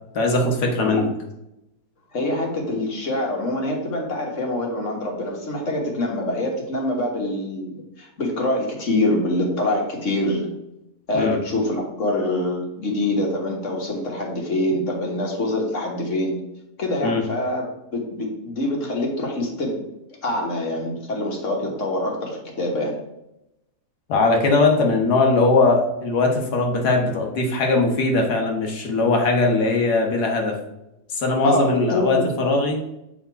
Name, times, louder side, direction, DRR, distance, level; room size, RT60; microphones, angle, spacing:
voice 1, 0.1-1.1 11.1-11.4 17.0-17.2 24.1-30.6 31.1-32.8, left 3 dB, 85° left, 2 dB, 1.7 m, -20 dB
voice 2, 2.1-10.5 11.1-16.4 16.8-17.6 17.9-19.9 20.2-23.0 31.4-32.2, left 1 dB, 55° left, 0 dB, 1.7 m, -25 dB
7.4 x 3.6 x 4.6 m, 0.88 s
omnidirectional pair, 1.7 m